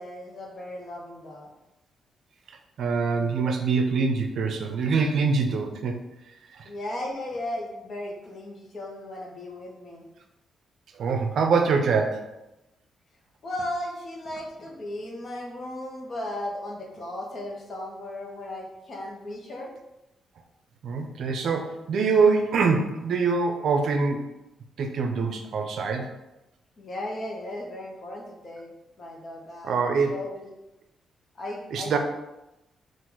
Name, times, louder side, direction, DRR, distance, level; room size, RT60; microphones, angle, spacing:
voice 1, 0.0-1.5 6.6-10.0 13.4-19.7 26.8-28.7 29.0-30.5 31.4-32.0, left 1 dB, 40° left, 0 dB, 0.9 m, -36 dB
voice 2, 2.8-6.0 6.5-6.7 11.0-12.3 20.8-24.2 24.8-26.1 29.6-30.1 31.7-32.0, right 4 dB, 65° right, 5 dB, 0.5 m, -24 dB
3.9 x 2.5 x 4.5 m, 0.95 s
cardioid pair, 125°, 0 cm